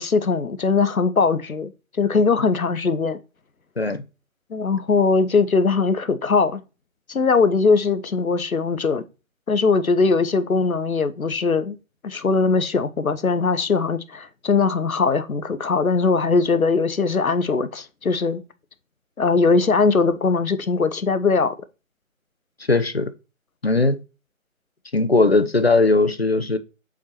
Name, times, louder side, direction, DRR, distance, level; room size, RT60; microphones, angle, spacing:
voice 1, 0.0-1.7 2.0-3.2 4.5-6.6 7.1-9.0 9.5-11.8 12.0-18.4 19.2-21.5, left 4 dB, 80° left, 0.8 m, -20 dB
voice 2, 22.7-23.1 23.6-24.0 24.9-26.6, left 3 dB, 50° left, 0.5 m, -18 dB
7.2 x 4.4 x 3.0 m
figure-of-eight pair, 165°, 41 cm